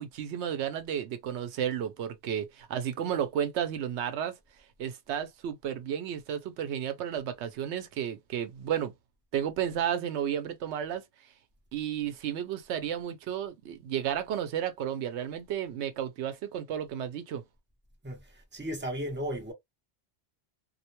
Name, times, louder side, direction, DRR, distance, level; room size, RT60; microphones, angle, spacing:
voice 1, 0.0-4.4 4.8-8.9 9.3-11.0 11.7-17.4, right 9 dB, 85° right, 0.9 m, -32 dB
voice 2, 18.0-19.5, equal, 10° right, 0.8 m, -35 dB
2.4 x 2.1 x 2.9 m
omnidirectional pair, 1.1 m